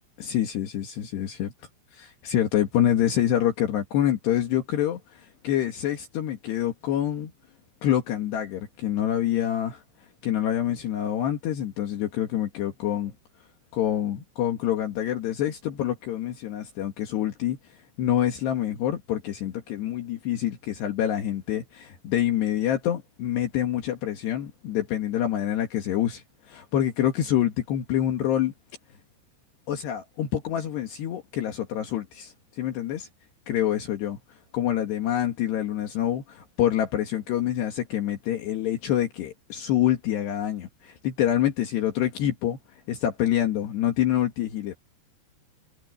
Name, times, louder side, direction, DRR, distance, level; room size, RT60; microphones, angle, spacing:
voice 1, 0.2-1.5 1.9-7.3 7.8-9.8 10.2-13.1 13.7-17.6 18.0-28.5 29.7-33.1 33.5-34.2 34.5-44.7, left 11 dB, 65° left, 3.8 m, -26 dB
omnidirectional pair, 5.4 m